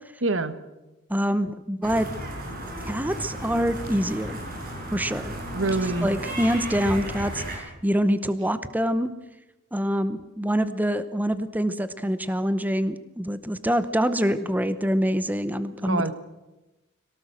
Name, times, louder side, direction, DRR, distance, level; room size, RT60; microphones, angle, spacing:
voice 1, 0.2-0.6 5.5-6.1 15.8-16.1, right 2 dB, 65° right, 12 dB, 1.3 m, -25 dB
voice 2, 1.1-2.1 2.9-4.4 4.9-5.3 6.0-9.1 9.7-16.0, equal, 10° right, 12 dB, 0.8 m, -25 dB
sound 1, 1.8-7.6, right 1 dB, 45° right, 6.6 m, -34 dB
23.0 x 18.0 x 7.7 m, 1.0 s
head